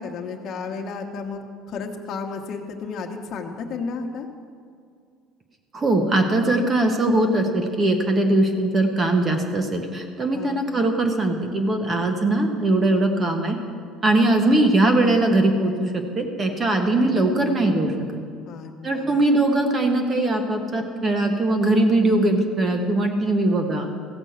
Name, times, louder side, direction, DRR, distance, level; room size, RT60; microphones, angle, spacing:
voice 1, 0.0-4.3 10.3-10.6 18.5-19.2, left 4 dB, 40° left, 1 dB, 1.2 m, -33 dB
voice 2, 5.7-13.6 14.0-18.2 18.8-23.9, right 2 dB, 25° right, 5 dB, 1.1 m, -21 dB
15.0 x 5.3 x 7.9 m, 2.2 s
cardioid pair, 155°, 0 cm